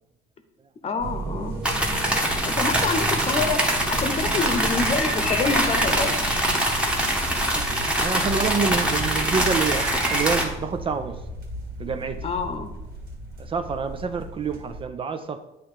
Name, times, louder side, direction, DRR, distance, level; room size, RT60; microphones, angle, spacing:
voice 1, 0.8-1.6 2.5-3.6 3.9-6.1 12.2-12.7, left 4 dB, 35° left, 7 dB, 0.9 m, -27 dB
sound 1, 1.0-14.8, right 2 dB, 70° right, 1.8 m, -35 dB
sound 2, 1.6-10.4, right 1 dB, 5° right, 1.1 m, -23 dB
voice 2, 8.0-11.2 11.8-12.3 13.4-15.4, right 5 dB, 30° right, 9 dB, 0.4 m, -27 dB
8.9 x 3.0 x 4.8 m, 0.94 s
cardioid pair, 110°, 17 cm